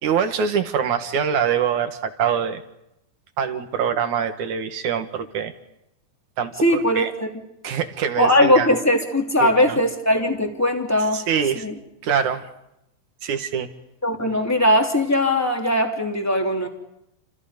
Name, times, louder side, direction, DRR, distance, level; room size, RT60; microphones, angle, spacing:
voice 1, 0.0-2.6 3.4-5.5 6.4-7.1 7.6-8.7 9.4-9.8 11.1-11.7 12.0-12.4 13.2-13.7, right 7 dB, 60° right, 7 dB, 2.2 m, -24 dB
voice 2, 6.6-7.3 8.2-11.2 11.5-11.7 14.0-16.7, left 1 dB, 5° left, 2 dB, 2.0 m, -20 dB
29.5 x 28.5 x 5.2 m, 0.84 s
omnidirectional pair, 5.3 m